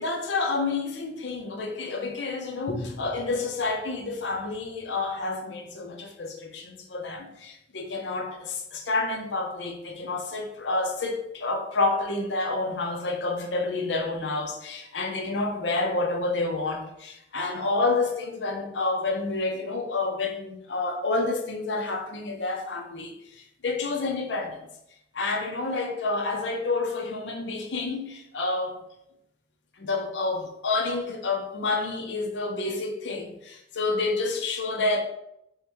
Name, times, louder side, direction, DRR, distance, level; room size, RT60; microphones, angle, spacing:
voice 1, 0.0-24.7 25.1-28.8 29.8-35.0, left 3 dB, 85° left, 0.6 m, -29 dB
3.6 x 3.0 x 3.4 m
head